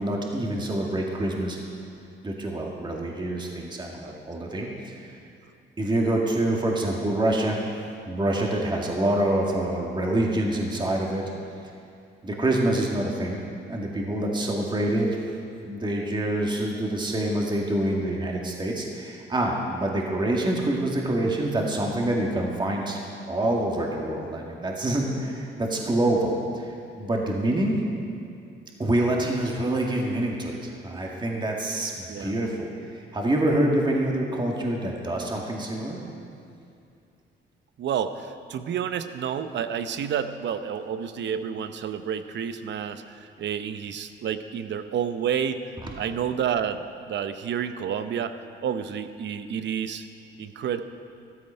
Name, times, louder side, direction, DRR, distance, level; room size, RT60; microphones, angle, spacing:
voice 1, 0.0-1.6 2.2-5.0 5.8-7.6 8.1-11.2 12.2-13.4 13.7-15.2 15.6-23.0 23.3-27.8 28.8-36.0, right 1 dB, 25° right, -1 dB, 2.0 m, -26 dB
voice 2, 37.8-45.6 46.0-48.3 48.6-50.1 50.4-50.8, right 8 dB, 65° right, 10 dB, 0.8 m, -30 dB
13.0 x 13.0 x 5.6 m, 2.5 s
cardioid pair, 90°, 20 cm